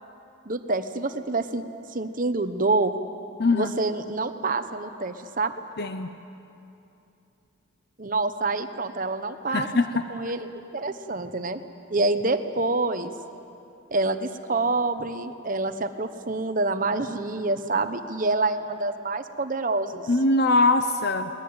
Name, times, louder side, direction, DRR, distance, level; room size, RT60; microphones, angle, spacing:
voice 1, 0.5-1.6 1.9-2.9 3.5-5.5 8.0-9.7 10.1-11.6 11.9-13.1 13.9-20.1, right 3 dB, 40° right, 9 dB, 1.1 m, -27 dB
voice 2, 3.4-3.7 5.8-6.1 9.5-9.9 20.1-21.3, left 2 dB, 50° left, 8 dB, 0.8 m, -22 dB
24.0 x 20.0 x 8.8 m, 2.8 s
head